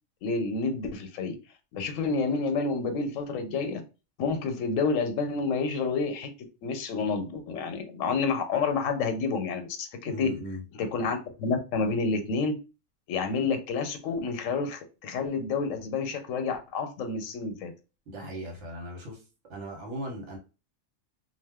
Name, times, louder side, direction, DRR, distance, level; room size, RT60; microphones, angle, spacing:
voice 1, 0.2-1.4 1.7-3.8 4.2-6.3 6.6-10.3 10.8-12.6 13.1-17.7, left 4 dB, 90° left, 8 dB, 1.0 m, -29 dB
voice 2, 10.0-10.6 18.1-19.2 19.5-20.4, equal, 65° right, 1 dB, 1.2 m, -38 dB
2.4 x 2.2 x 3.4 m, 0.31 s
omnidirectional pair, 1.3 m